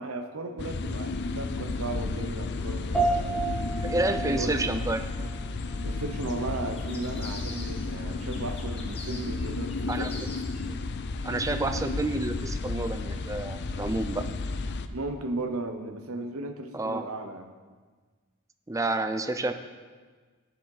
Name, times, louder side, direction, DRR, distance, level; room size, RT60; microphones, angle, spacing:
voice 1, 0.0-3.5 4.1-4.8 5.8-10.1 14.9-17.5, right 2 dB, 75° right, 7 dB, 1.0 m, -35 dB
sound 1, 0.6-14.9, left 3 dB, 50° left, 0.5 m, -33 dB
sound 2, 2.9-12.5, right 3 dB, 5° left, 1.7 m, -35 dB
voice 2, 3.8-5.0 9.9-10.1 10.6-10.8 11.2-14.2 16.7-17.0 18.7-19.5, right 2 dB, 15° right, 8 dB, 0.5 m, -29 dB
sound 3, 6.8-8.0 8.3-10.6, left 3 dB, 25° left, 1.4 m, -44 dB
10.0 x 7.2 x 4.9 m, 1.4 s
head